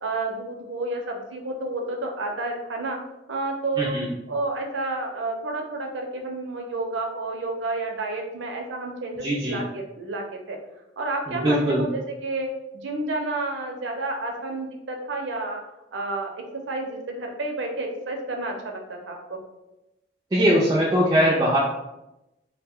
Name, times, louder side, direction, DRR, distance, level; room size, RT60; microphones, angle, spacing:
voice 1, 0.0-3.0 3.3-4.0 4.3-10.6 11.0-12.5 12.8-15.6 15.9-19.4, right 2 dB, 75° right, 2 dB, 0.5 m, -30 dB
voice 2, 3.8-4.1 9.2-9.6 11.3-11.8 20.3-21.6, equal, 20° right, -6 dB, 0.3 m, -21 dB
2.4 x 2.1 x 3.5 m, 0.94 s
head